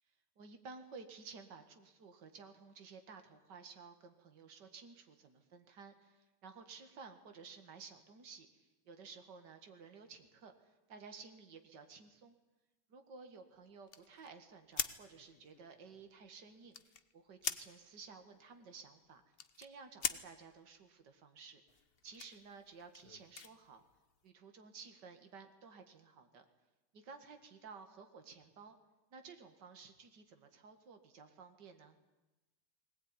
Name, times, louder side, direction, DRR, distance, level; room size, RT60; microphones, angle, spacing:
voice 1, 0.4-8.5 8.8-10.5 10.9-12.3 12.9-16.8 17.1-19.2 19.6-21.6 22.0-23.8 24.2-26.5 26.9-28.8 29.1-32.0, right 5 dB, 50° right, 6 dB, 2.6 m, -54 dB
sound 1, 13.9-17.1 17.4-17.7 18.0-20.3 21.7-24.2, left 6 dB, 55° left, 0.6 m, -44 dB
20.5 x 19.0 x 9.9 m, 1.0 s
omnidirectional pair, 2.4 m